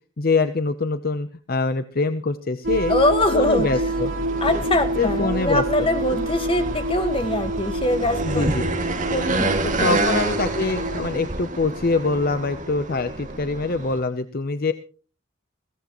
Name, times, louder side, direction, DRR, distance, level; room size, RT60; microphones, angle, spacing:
voice 1, 0.2-2.9 3.3-4.1 5.0-5.6 8.2-8.6 9.8-14.7, left 3 dB, 50° left, 10 dB, 0.7 m, -24 dB
sound 1, 2.6-11.0, right 1 dB, 85° right, 2.2 m, -28 dB
voice 2, 2.9-3.9 4.4-8.4 9.1-10.1, left 1 dB, 25° left, 7 dB, 1.6 m, -23 dB
sound 2, 3.4-14.0, right 2 dB, 40° right, 2.2 m, -29 dB
21.0 x 16.5 x 3.1 m, 0.38 s
head